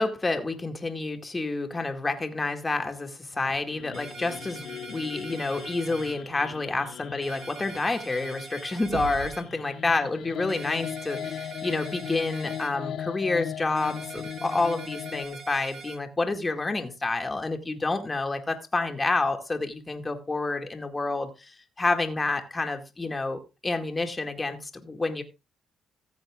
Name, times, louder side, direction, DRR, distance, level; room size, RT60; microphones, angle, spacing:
voice 1, 0.0-25.2, left 3 dB, 20° left, 5 dB, 2.0 m, -29 dB
sound 1, 3.3-15.3, left 9 dB, 70° left, 0.8 m, -39 dB
sound 2, 3.9-6.1 7.2-9.4 10.5-12.7 13.8-16.0, right 4 dB, 55° right, 5.6 m, -43 dB
sound 3, 8.5-8.6 8.8-9.5 11.2-11.3 13.1-13.3 14.1-14.2, right 6 dB, 70° right, 2.5 m, -36 dB
14.5 x 7.8 x 3.6 m, 0.27 s
cardioid pair, 90°, 0 cm